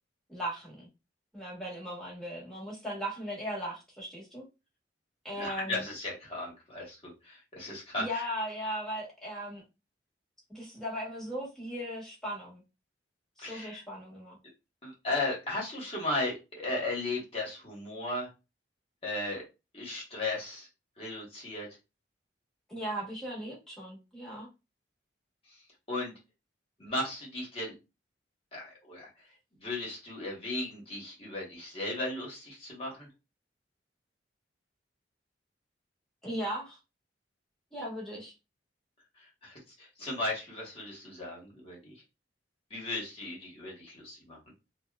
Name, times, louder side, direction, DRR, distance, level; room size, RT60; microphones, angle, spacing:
voice 1, 0.3-0.9 1.3-4.4 5.2-5.9 8.0-9.6 10.5-12.6 13.4-14.4 22.7-24.5 36.2-36.8 37.7-38.3, equal, 5° left, -4 dB, 1.0 m, -37 dB
voice 2, 5.3-8.2 13.4-13.8 14.8-18.3 19.0-19.4 19.7-20.7 21.0-21.7 25.9-26.1 26.8-27.7 28.5-29.1 29.6-33.1 39.4-41.9 42.7-44.4, left 2 dB, 30° left, -3 dB, 1.1 m, -36 dB
2.8 x 2.1 x 2.2 m, 0.27 s
head